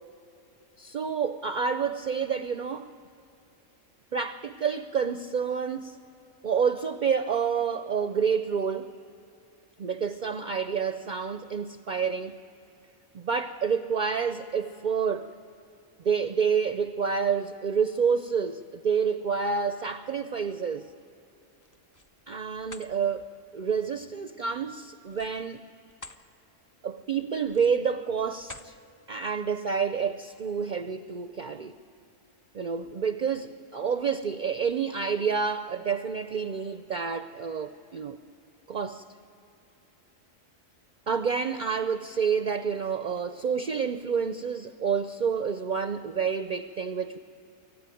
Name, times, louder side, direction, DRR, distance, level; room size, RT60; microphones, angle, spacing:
voice 1, 0.8-2.9 4.1-6.0 6.4-8.9 9.8-12.4 13.1-15.3 16.0-20.9 22.3-23.3 23.5-25.6 26.8-28.8 29.1-31.7 32.5-38.2 38.7-39.0 41.1-47.2, right 6 dB, 50° right, 0.6 m, -28 dB
sound 1, 21.5-22.1 22.6-22.9 25.0-26.2 26.7-26.9 27.4-27.9 28.4-28.8, left 2 dB, 20° left, 0.6 m, -47 dB
25.0 x 15.0 x 9.2 m
omnidirectional pair, 1.3 m